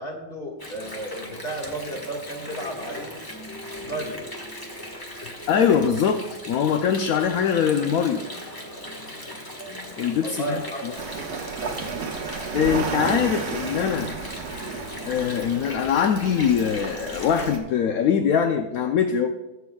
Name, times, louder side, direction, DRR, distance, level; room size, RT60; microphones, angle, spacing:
voice 1, 0.0-3.2 3.8-4.2 10.2-11.0, right 1 dB, 35° left, -1 dB, 1.9 m, -33 dB
Water, 0.6-17.5, left 1 dB, 15° left, 1.2 m, -38 dB
voice 2, 5.1-8.2 10.0-10.9 12.5-14.2 15.1-19.3, left 7 dB, 65° left, 6 dB, 0.9 m, -23 dB
sound 1, 11.0-17.6, right 5 dB, 65° right, 1.7 m, -33 dB
21.0 x 7.0 x 2.3 m, 1.1 s
omnidirectional pair, 1.9 m